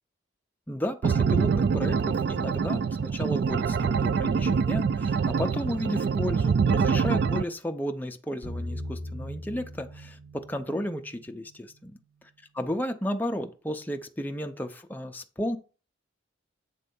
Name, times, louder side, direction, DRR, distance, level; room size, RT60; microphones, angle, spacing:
voice 1, 0.7-11.9 12.5-15.6, equal, 10° left, 0.5 m, -33 dB
sound 1, 1.0-7.4, right 6 dB, 55° right, 0.3 m, -25 dB
sound 2, 8.4-11.5, left 1 dB, 90° right, 4.3 m, -39 dB
8.4 x 3.3 x 5.3 m
head